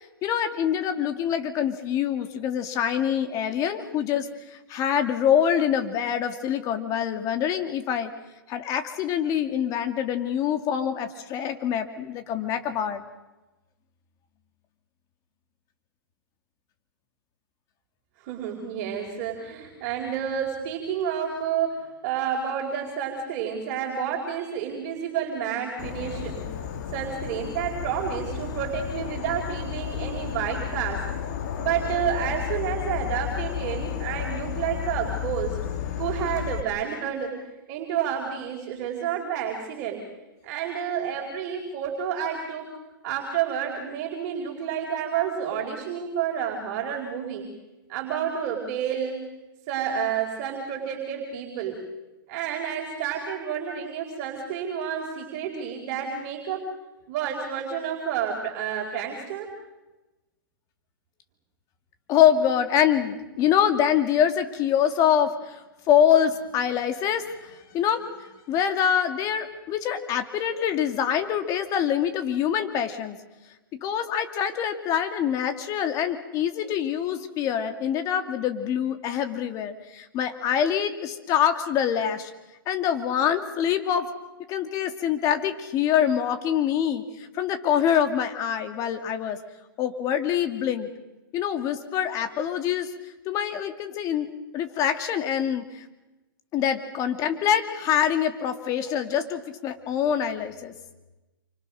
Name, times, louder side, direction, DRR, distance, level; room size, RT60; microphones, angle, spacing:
voice 1, 0.2-8.1 8.5-13.0 62.1-65.6 65.9-68.0 68.5-73.2 73.8-82.3 82.7-84.1 84.5-89.4 89.8-90.9 91.3-92.9 93.2-94.3 94.5-95.8 96.5-100.7, left 9 dB, 30° left, 8 dB, 2.4 m, -25 dB
voice 2, 18.2-26.4 26.9-31.0 31.6-35.6 36.0-37.4 37.7-40.0 40.4-42.7 43.0-47.5 47.9-49.2 49.7-51.8 52.3-56.7 57.1-59.5, right 8 dB, 40° right, 0 dB, 4.7 m, -30 dB
Insect / Frog, 25.8-36.6, left 10 dB, 50° left, 2.8 m, -32 dB
28.5 x 25.5 x 6.4 m, 1.1 s
hypercardioid pair, 140°, 12 cm